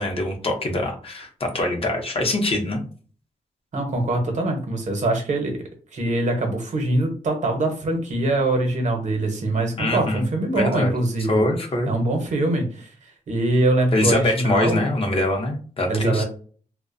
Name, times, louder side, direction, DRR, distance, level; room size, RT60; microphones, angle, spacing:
voice 1, 0.0-2.8 9.8-10.3 10.6-10.9 11.3-11.9 13.9-16.2, left 1 dB, 40° left, 3 dB, 0.6 m, -23 dB
voice 2, 3.7-5.6 5.9-11.5 11.9-14.8 15.9-16.2, right 2 dB, 55° right, 3 dB, 0.8 m, -23 dB
2.4 x 2.1 x 2.5 m, 0.41 s
wide cardioid pair, 110°, 14 cm